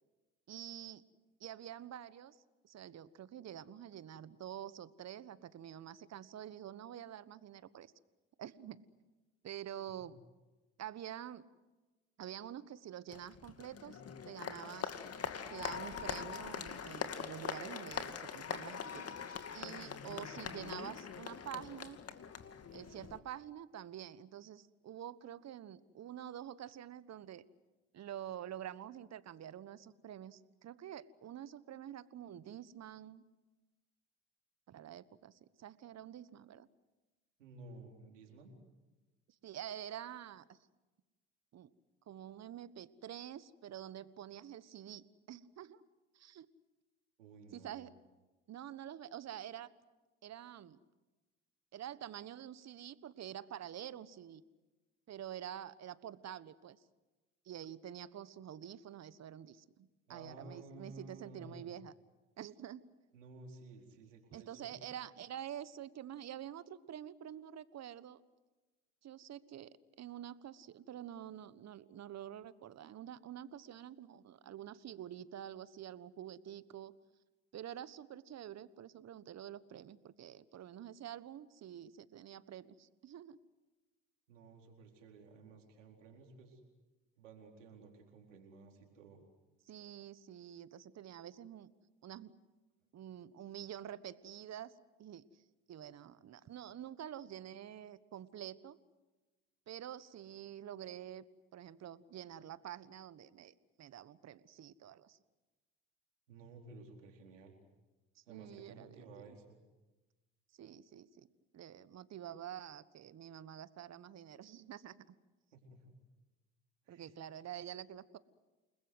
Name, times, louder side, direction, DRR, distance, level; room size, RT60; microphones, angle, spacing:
voice 1, 0.5-1.0 1.4-2.4 2.6-7.9 8.4-8.8 9.4-10.2 10.8-11.4 12.2-14.0 14.3-14.9 15.5-19.1 19.5-22.0 22.7-27.4 27.9-33.2 34.7-36.7 39.4-40.6 41.5-41.7 42.1-45.8 46.1-46.5 47.5-47.9 48.5-49.7 50.2-50.8 51.7-54.4 55.1-56.8 57.4-61.9 62.4-62.8 64.3-68.2 69.0-76.9 77.5-83.4 89.7-91.7 92.0-92.3 92.9-94.7 95.0-95.3 95.7-98.8 99.7-101.2 101.5-105.2 108.1-109.0 110.6-111.3 111.5-115.1 116.9-118.2, right 10 dB, 45° right, 16 dB, 1.4 m, -48 dB
Applause, 13.1-23.2, left 7 dB, 40° left, 2.3 m, -43 dB
voice 2, 37.4-38.5 47.2-47.9 60.1-61.7 63.1-64.8 84.3-86.6 87.2-89.2 106.3-107.6 108.3-109.6 115.5-115.9 116.8-117.2, right 3 dB, 90° right, 2 dB, 4.4 m, -54 dB
29.5 x 21.0 x 8.0 m, 1.2 s
hypercardioid pair, 60°, 36 cm